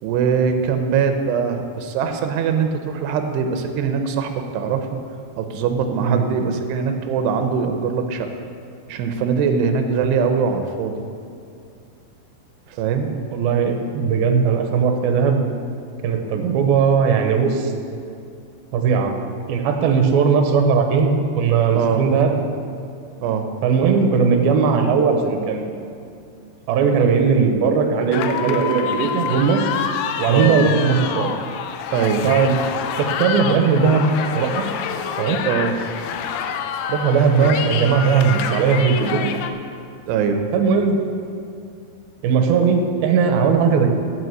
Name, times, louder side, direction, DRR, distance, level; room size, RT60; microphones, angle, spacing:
voice 1, 0.0-4.9 5.4-8.3 8.9-11.0 12.7-13.1 21.7-22.1 23.2-23.5 30.3-30.6 31.9-32.3 35.5-35.8 37.4-37.5 40.1-40.4, right 6 dB, 90° right, 6 dB, 2.8 m, -22 dB
voice 2, 13.3-15.5 16.0-17.7 18.7-19.1 19.5-22.4 23.6-25.8 26.7-29.7 30.2-31.3 32.2-32.6 33.0-34.6 35.2-35.4 36.9-39.3 40.5-41.0 42.2-43.9, right 5 dB, 75° right, 4 dB, 2.5 m, -18 dB
sound 1, 28.1-39.5, left 7 dB, 85° left, 2.6 m, -27 dB
9.3 x 6.1 x 7.7 m, 2.5 s
omnidirectional pair, 4.7 m